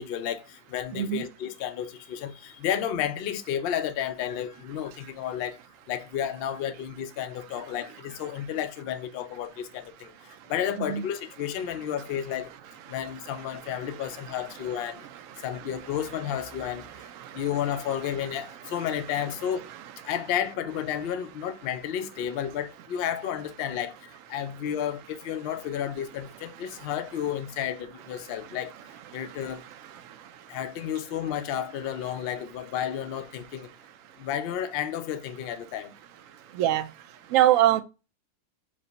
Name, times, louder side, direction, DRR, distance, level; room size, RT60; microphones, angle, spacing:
voice 1, 0.0-5.6 5.9-10.1 10.5-12.5 12.9-15.0 15.4-16.9 17.3-19.7 20.0-28.7 29.1-29.6 30.5-33.7 34.2-35.9, left 9 dB, 80° left, 0.5 m, -32 dB
voice 2, 0.9-1.3 10.8-11.0 17.2-17.3 36.5-36.9 37.3-37.8, right 12 dB, 70° right, 0.9 m, -22 dB
5.1 x 2.0 x 3.8 m
omnidirectional pair, 1.6 m